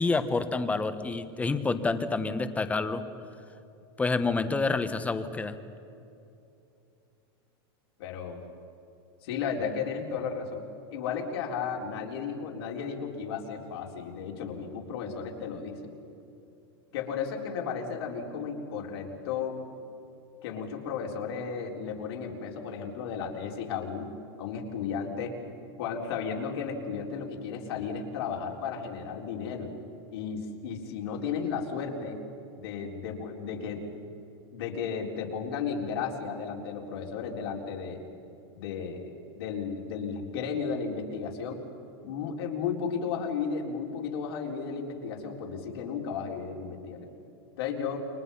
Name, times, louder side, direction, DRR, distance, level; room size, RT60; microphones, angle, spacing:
voice 1, 0.0-3.0 4.0-5.6, left 3 dB, 10° left, 10 dB, 1.2 m, -28 dB
voice 2, 8.0-8.4 9.2-10.6 10.9-15.9 16.9-19.6 20.4-24.1 24.4-25.4 25.8-29.7 30.1-32.2 32.6-33.8 34.5-38.0 38.5-41.6 42.0-47.1 47.6-48.0, left 6 dB, 75° left, 0 dB, 4.1 m, -34 dB
29.5 x 23.5 x 5.6 m, 2.7 s
supercardioid pair, 140°, 13 cm